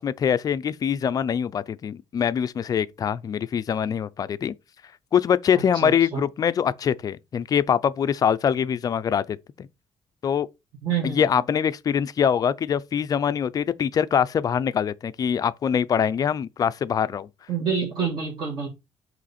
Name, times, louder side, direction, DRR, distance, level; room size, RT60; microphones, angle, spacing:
voice 1, 0.0-4.5 5.1-9.7 10.2-10.5 11.0-17.3, left 8 dB, 30° left, 0.3 m, -24 dB
voice 2, 5.8-6.2 10.8-11.2 17.5-18.7, right 6 dB, 40° right, 1.6 m, -27 dB
7.6 x 3.1 x 4.2 m
cardioid pair, 175°, 12 cm